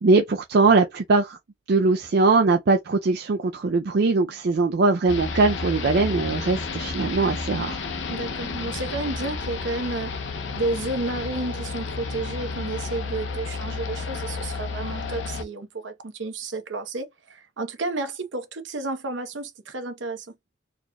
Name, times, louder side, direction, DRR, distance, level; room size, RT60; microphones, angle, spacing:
voice 1, 0.0-1.4 1.7-7.8, right 3 dB, 55° right, 0.4 m, -21 dB
sound 1, 5.1-15.4, left 4 dB, 70° left, 0.7 m, -31 dB
voice 2, 8.1-20.3, right 2 dB, 75° right, 0.9 m, -31 dB
4.2 x 2.9 x 2.2 m
head